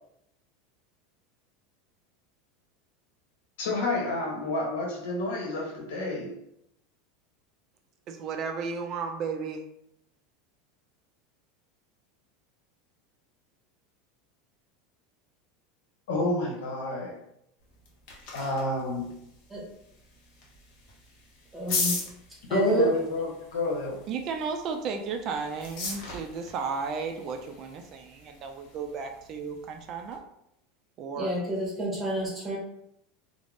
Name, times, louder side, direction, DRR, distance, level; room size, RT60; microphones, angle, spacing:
voice 1, 3.6-6.4 16.1-17.2 18.3-19.2 22.5-24.0, left 2 dB, 85° left, -1 dB, 0.9 m, -29 dB
voice 2, 8.1-9.6 24.1-30.2 31.0-31.3, right 5 dB, 40° right, 4 dB, 0.3 m, -34 dB
sound 1, 17.6-30.2, left 3 dB, 55° left, 0.8 m, -39 dB
voice 3, 21.5-22.0 22.5-22.9 31.2-32.6, right 1 dB, 10° right, -5 dB, 0.9 m, -28 dB
2.5 x 2.0 x 3.3 m, 0.78 s
supercardioid pair, 140°, 0 cm